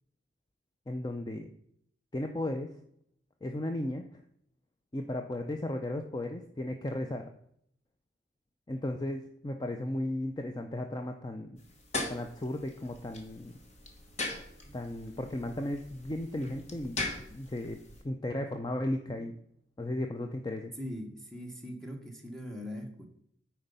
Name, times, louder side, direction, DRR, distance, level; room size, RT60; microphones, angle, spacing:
voice 1, 0.9-1.5 2.1-2.8 3.4-4.1 4.9-7.3 8.7-11.6 12.1-13.5 14.7-17.8 18.0-19.3 19.8-20.7, left 1 dB, 20° left, 5 dB, 0.4 m, -35 dB
sound 1, 11.6-18.0, left 2 dB, 40° left, 1.3 m, -41 dB
voice 2, 20.8-23.1, equal, 5° left, 2 dB, 1.2 m, -41 dB
8.9 x 4.5 x 5.5 m, 0.70 s
head